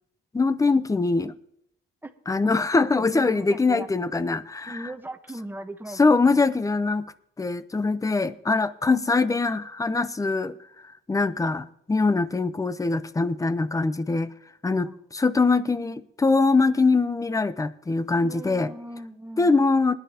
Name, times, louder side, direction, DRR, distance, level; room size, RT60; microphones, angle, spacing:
voice 1, 0.3-1.3 2.3-4.8 6.0-7.1 7.4-14.3 14.6-18.7 19.4-20.0, left 3 dB, 15° left, 0.6 m, -23 dB
voice 2, 3.1-3.9 4.6-6.5 14.8-14.9 18.2-19.5, right 1 dB, 10° right, 1.1 m, -38 dB
19.5 x 10.5 x 2.9 m
cardioid pair, 90°, 20 cm